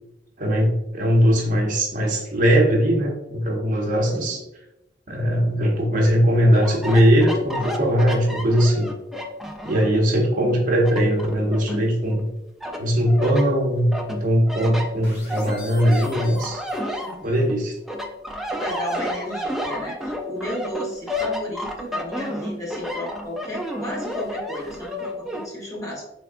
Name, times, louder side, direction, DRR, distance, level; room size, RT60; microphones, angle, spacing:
voice 1, 0.4-4.4 5.1-8.9 9.6-12.3 12.8-16.6 17.2-17.8, equal, 45° right, 0 dB, 0.7 m, -20 dB
voice 2, 4.1-4.4 9.8-10.1 17.0-17.4 18.6-26.2, equal, 20° left, -3 dB, 0.8 m, -34 dB
sound 1, 6.5-10.0 10.4-12.2 12.6-13.5 13.9-17.5 17.9-25.5, left 1 dB, ahead, 0.3 m, -31 dB
sound 2, 15.0-17.5, left 2 dB, 70° left, 1.4 m, -44 dB
3.5 x 3.4 x 2.4 m, 0.92 s
head